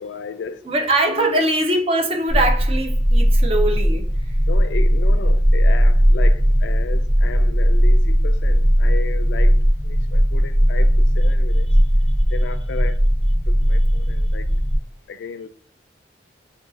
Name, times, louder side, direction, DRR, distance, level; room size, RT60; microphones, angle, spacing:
voice 1, 0.0-0.6 1.0-1.4 4.5-9.6 9.8-11.7 12.3-13.0 13.5-14.5 15.1-15.5, left 5 dB, 75° left, 0.3 m, -33 dB
voice 2, 0.6-4.1, right 1 dB, 30° right, 0.5 m, -21 dB
sound 1, 2.3-14.8, equal, 85° right, 1.3 m, -17 dB
2.5 x 2.3 x 3.9 m
head